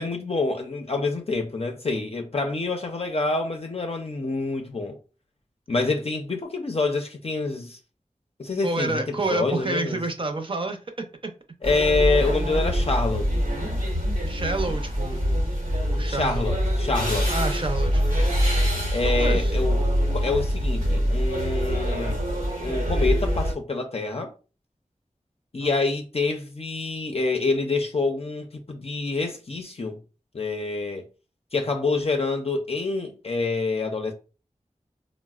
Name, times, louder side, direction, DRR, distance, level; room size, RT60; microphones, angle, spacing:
voice 1, 0.0-5.0 5.7-7.8 8.4-10.0 11.6-13.3 16.1-17.3 18.9-19.8 20.1-22.2 22.6-24.3 25.5-30.0 30.3-31.0 31.5-34.1, left 3 dB, 50° left, 0.5 m, -26 dB
voice 2, 8.6-11.3 14.3-15.4 15.9-16.5 17.3-18.0 19.0-19.5 25.6-25.8, right 2 dB, 40° right, 0.6 m, -29 dB
sound 1, 11.6-23.5, equal, 85° right, 0.9 m, -24 dB
3.9 x 2.0 x 2.3 m
wide cardioid pair, 50°, 14 cm